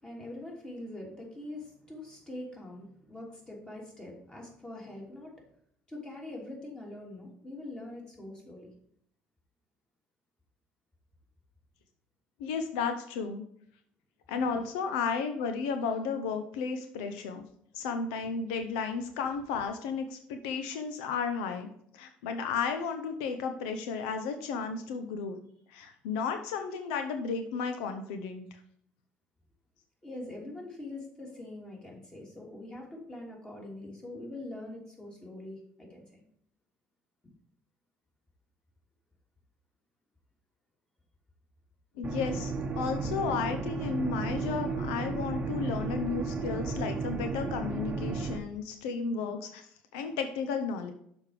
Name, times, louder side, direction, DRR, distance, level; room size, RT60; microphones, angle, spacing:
voice 1, 0.0-5.5 5.9-8.7 30.0-36.2, left 1 dB, 20° left, -2 dB, 3.2 m, -43 dB
voice 2, 12.4-13.4 14.3-17.4 17.7-25.4 25.7-28.5 42.0-50.9, left 5 dB, 85° left, 7 dB, 0.7 m, -33 dB
sound 1, 42.0-48.4, right 4 dB, 30° right, 0.9 m, -33 dB
6.6 x 5.2 x 4.9 m, 0.67 s
supercardioid pair, 85°, 4 cm